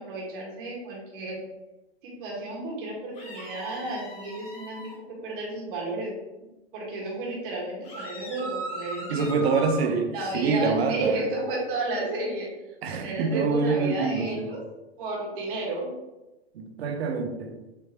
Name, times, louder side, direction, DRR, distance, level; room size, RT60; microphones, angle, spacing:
voice 1, 0.0-1.4 2.0-4.8 5.1-6.1 6.7-9.5 10.1-12.5 12.9-14.6 15.0-15.9, right 2 dB, 55° right, 1.5 m, -32 dB
sound 1, 3.1-4.9 7.8-9.9, right 1 dB, 20° left, 1.2 m, -38 dB
voice 2, 9.1-11.2 12.8-14.5 16.5-17.5, right 4 dB, 70° right, 0.7 m, -26 dB
3.3 x 3.1 x 2.9 m
hypercardioid pair, 110°, 32 cm